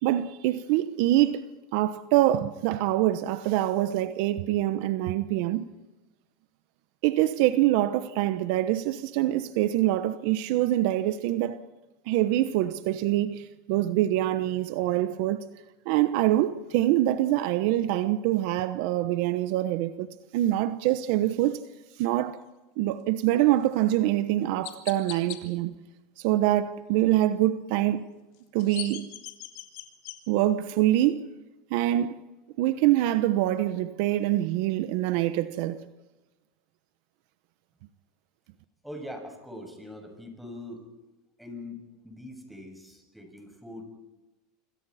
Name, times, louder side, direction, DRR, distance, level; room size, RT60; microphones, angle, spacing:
voice 1, 0.0-1.4 1.7-5.7 7.0-11.6 12.1-15.5 15.9-21.6 22.0-22.4 22.8-25.8 26.2-28.1 28.5-29.1 30.3-31.2 31.7-32.2 32.6-35.8, right 14 dB, 65° right, 1.0 m, -25 dB
Chirp tweet, 23.7-23.9 24.6-25.4 28.3-30.2, left 17 dB, 65° left, 3.2 m, -40 dB
voice 2, 38.8-40.9 41.4-43.8, left 1 dB, ahead, 6.6 m, -42 dB
26.5 x 25.5 x 4.3 m
supercardioid pair, 115°, 0 cm